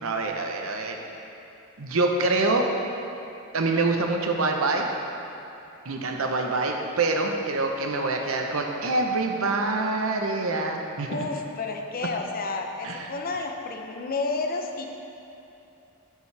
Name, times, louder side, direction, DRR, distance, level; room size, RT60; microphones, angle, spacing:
voice 1, 0.0-1.0 1.8-2.7 3.5-4.9 5.8-11.2 12.8-13.1, right 3 dB, 90° right, 2 dB, 0.9 m, -25 dB
voice 2, 11.1-14.9, left 3 dB, 45° left, 3 dB, 0.7 m, -31 dB
9.7 x 8.3 x 3.4 m, 2.9 s
head